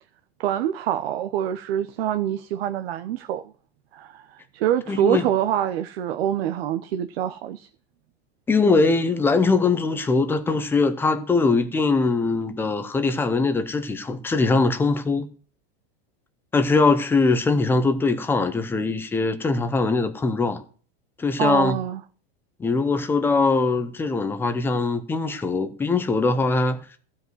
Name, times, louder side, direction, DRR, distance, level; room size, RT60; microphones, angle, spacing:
voice 1, 0.4-3.4 3.9-7.7 21.4-22.0, right 10 dB, 70° right, 0.9 m, -25 dB
voice 2, 4.9-5.3 8.5-15.3 16.5-20.6 21.2-21.8 22.6-26.8, left 3 dB, 5° left, 0.6 m, -21 dB
15.0 x 5.3 x 7.8 m
supercardioid pair, 175°, 32 cm